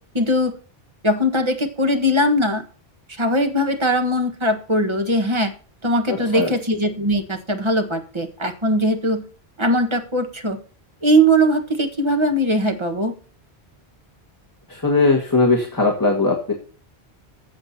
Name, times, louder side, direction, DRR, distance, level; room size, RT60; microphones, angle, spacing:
voice 1, 0.1-0.5 1.0-2.6 3.1-5.5 5.8-9.2 9.6-10.6 11.0-13.1, equal, 25° right, 5 dB, 1.5 m, -20 dB
voice 2, 6.1-6.5 14.7-16.5, left 3 dB, 20° left, 0 dB, 1.7 m, -19 dB
15.5 x 7.7 x 2.8 m, 0.39 s
omnidirectional pair, 1.1 m